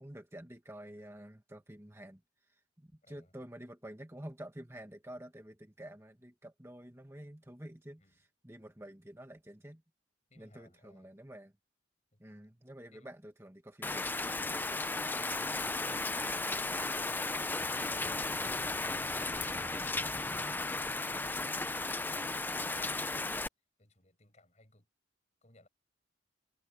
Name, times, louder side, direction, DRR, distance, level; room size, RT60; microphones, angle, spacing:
voice 1, 0.0-2.2 2.5-9.8 10.3-11.5 12.2-14.2 15.9-16.1, right 1 dB, 15° right, 1.5 m, -49 dB
voice 2, 3.0-3.3 8.0-8.2 10.3-11.1 12.1-12.2 12.9-13.1 23.8-24.9 25.4-25.7, left 2 dB, 35° left, 6.9 m, -62 dB
Rain, 13.8-23.5, left 3 dB, 10° left, 0.4 m, -35 dB
head